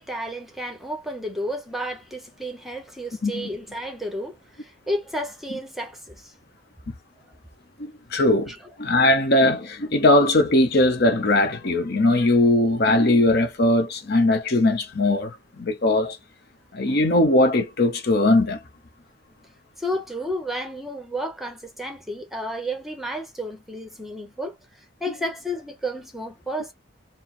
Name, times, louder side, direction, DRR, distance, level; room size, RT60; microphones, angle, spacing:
voice 1, 0.0-6.3 19.8-24.6 25.0-26.7, equal, ahead, 0.9 m, -31 dB
voice 2, 7.8-8.5 8.8-16.2 16.7-18.6, left 2 dB, 50° left, 0.8 m, -20 dB
4.6 x 2.1 x 4.2 m
head